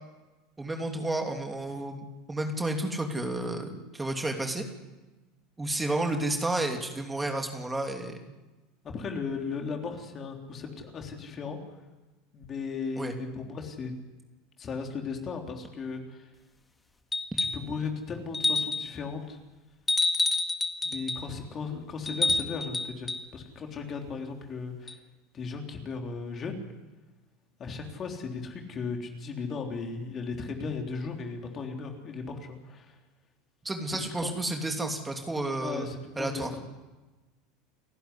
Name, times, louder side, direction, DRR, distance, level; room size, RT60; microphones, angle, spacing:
voice 1, 0.6-4.7 5.6-8.2 13.0-13.1 33.6-35.9 36.2-36.5, right 2 dB, 15° right, 4 dB, 3.0 m, -31 dB
voice 2, 8.9-11.6 12.3-13.9 14.6-16.3 17.3-19.4 20.8-25.0 25.3-26.6 27.6-33.0 33.9-34.3 35.6-36.6, left 4 dB, 35° left, 3 dB, 3.7 m, -36 dB
sound 1, 17.1-17.7 18.3-18.9 19.9-21.3 22.1-23.3 24.9-25.0, left 3 dB, 15° left, 1.9 m, -28 dB
29.5 x 11.5 x 9.9 m, 1.2 s
hypercardioid pair, 80°, 0 cm